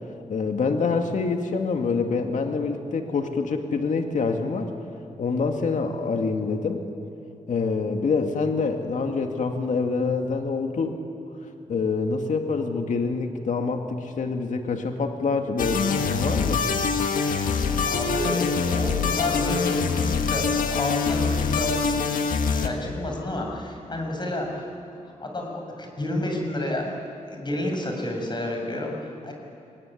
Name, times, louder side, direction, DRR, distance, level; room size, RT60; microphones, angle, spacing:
voice 1, 0.3-4.7 5.2-6.8 7.5-11.0 11.7-16.6, left 4 dB, 65° left, 4 dB, 2.1 m, -26 dB
sound 1, 15.6-22.7, left 5 dB, 90° left, 1.8 m, -24 dB
voice 2, 17.8-19.8 20.1-22.2 22.6-24.7 25.2-26.9 27.2-29.3, left 1 dB, 35° left, 1 dB, 6.3 m, -30 dB
25.0 x 19.0 x 9.9 m, 2.7 s
cardioid pair, 85°, 14 cm